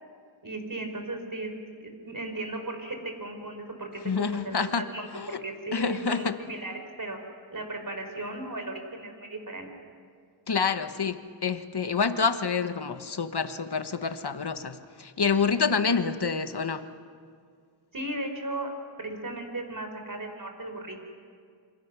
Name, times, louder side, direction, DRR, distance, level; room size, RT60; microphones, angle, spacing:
voice 1, 0.4-1.5 2.0-7.2 7.5-9.7 17.9-18.7 19.0-21.0, right 2 dB, 45° right, 5 dB, 4.5 m, -36 dB
voice 2, 4.0-5.4 5.7-6.4 10.5-16.9, left 5 dB, 60° left, 9 dB, 1.4 m, -28 dB
27.5 x 26.0 x 6.2 m, 2.1 s
wide cardioid pair, 55°, 44 cm